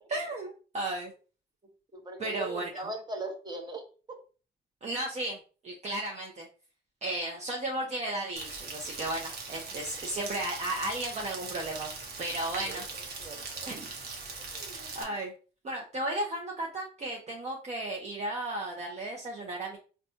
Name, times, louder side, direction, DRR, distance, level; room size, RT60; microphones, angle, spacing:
voice 1, 0.1-1.1 2.2-2.9 4.8-5.4 5.6-6.5 7.0-11.9 12.2-12.8 13.7-13.9 14.5-15.3 15.6-19.8, right 1 dB, 40° right, 0 dB, 0.7 m, -34 dB
voice 2, 1.9-3.8 4.1-4.2 12.5-13.7, right 2 dB, 25° right, 2 dB, 1.1 m, -40 dB
Rain, 8.4-15.0, right 4 dB, 65° right, 0.9 m, -40 dB
4.1 x 2.3 x 2.8 m, 0.37 s
cardioid pair, 90°, 18 cm